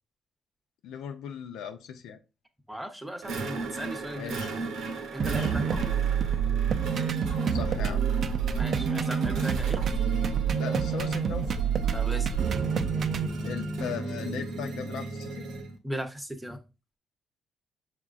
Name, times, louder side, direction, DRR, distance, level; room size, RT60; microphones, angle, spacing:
voice 1, 0.8-2.2 4.1-4.9 5.2-5.5 7.5-8.0 10.5-11.6 13.4-15.5, left 8 dB, 90° left, 7 dB, 0.6 m, -38 dB
voice 2, 2.7-4.3 5.1-6.1 8.6-9.8 11.9-12.4 15.8-16.6, equal, 5° right, 7 dB, 0.8 m, -37 dB
sound 1, 3.2-15.8, right 3 dB, 80° right, 0.9 m, -35 dB
sound 2, 5.2-13.3, right 7 dB, 55° right, 0.4 m, -27 dB
6.0 x 3.5 x 2.4 m, 0.29 s
cardioid pair, 90°, 0 cm